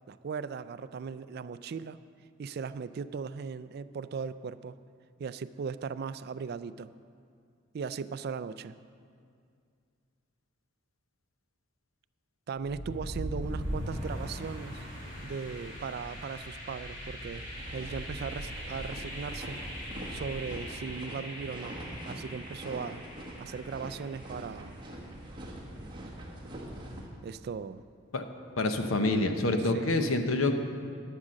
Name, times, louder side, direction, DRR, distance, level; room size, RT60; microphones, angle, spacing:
voice 1, 0.1-2.0 2.4-4.8 5.2-6.9 7.7-8.8 12.5-14.8 15.2-17.4 17.7-19.6 20.1-21.8 22.1-23.0 23.4-24.8 27.2-27.8 29.7-29.9, right 5 dB, 50° right, 14 dB, 0.3 m, -38 dB
sound 1, 12.6-24.4, equal, 35° left, 2.1 m, -40 dB
sound 2, 17.3-27.1, right 1 dB, 25° right, 1.5 m, -44 dB
voice 2, 28.6-30.6, left 2 dB, 75° left, 7 dB, 0.9 m, -27 dB
12.0 x 7.4 x 6.3 m, 2.3 s
head